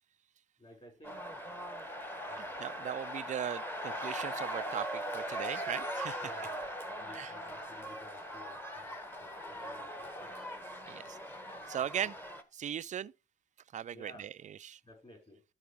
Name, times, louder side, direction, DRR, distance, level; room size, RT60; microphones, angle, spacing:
voice 1, 0.6-1.4 2.3-2.7 6.2-10.3 13.9-14.3 14.8-15.4, equal, 30° left, 5.2 m, -55 dB
sound 1, 1.0-12.4, equal, 10° left, 1.2 m, -40 dB
voice 2, 2.4-6.4 7.1-7.3 10.9-11.2 11.7-12.2 12.5-13.1 13.7-14.8, right 9 dB, 40° right, 0.4 m, -39 dB
13.0 x 4.8 x 3.4 m
cardioid pair, 90°, 20 cm